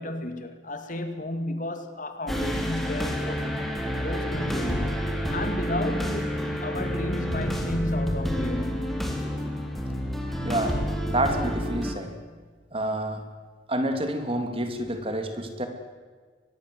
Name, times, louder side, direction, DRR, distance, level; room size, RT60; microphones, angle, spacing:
voice 1, 0.0-3.4 4.0-8.9, left 1 dB, 40° left, 2.4 m, -32 dB
sound 1, 2.3-11.9, equal, ahead, 3.4 m, -29 dB
voice 2, 10.4-10.8 11.1-12.1 12.7-13.2 13.7-15.7, right 1 dB, 30° right, 2.9 m, -28 dB
24.0 x 20.5 x 7.9 m
head